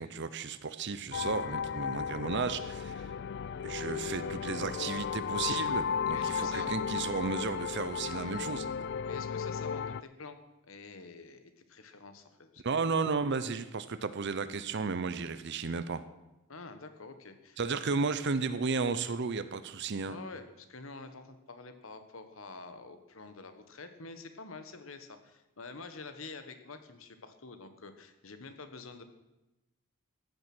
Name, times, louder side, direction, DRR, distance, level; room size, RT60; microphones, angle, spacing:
voice 1, 0.0-3.1 3.6-8.7 12.6-16.0 17.6-20.2, right 4 dB, 55° right, 12 dB, 0.6 m, -33 dB
sound 1, 1.1-10.0, left 7 dB, 55° left, 0.3 m, -35 dB
voice 2, 6.1-6.7 9.1-10.4 10.7-12.8 16.5-17.6 20.0-29.0, left 3 dB, 70° left, 9 dB, 1.3 m, -47 dB
15.0 x 9.2 x 6.1 m, 0.99 s
head